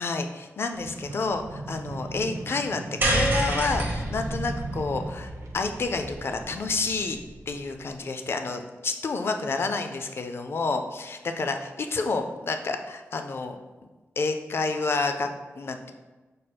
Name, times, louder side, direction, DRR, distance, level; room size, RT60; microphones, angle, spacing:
voice 1, 0.0-7.2 7.5-13.6 14.2-15.3 15.6-15.9, left 3 dB, 55° left, 6 dB, 0.3 m, -29 dB
sound 1, 0.7-6.5, right 2 dB, 80° right, 0.4 m, -38 dB
sound 2, 3.0-7.4, right 1 dB, 40° right, 1.1 m, -29 dB
4.8 x 4.2 x 2.2 m, 1.2 s
wide cardioid pair, 125°, 5 cm